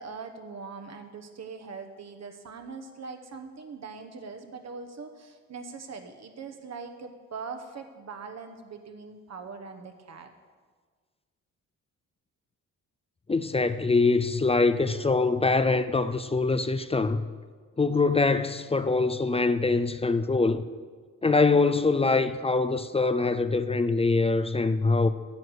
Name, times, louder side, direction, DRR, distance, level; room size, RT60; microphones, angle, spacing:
voice 1, 0.0-10.3, right 5 dB, 55° right, 1.1 m, -41 dB
voice 2, 13.3-17.2 17.8-20.6 21.2-25.1, left 3 dB, 20° left, 0.4 m, -24 dB
9.5 x 7.8 x 6.4 m
cardioid pair, 80°, 33 cm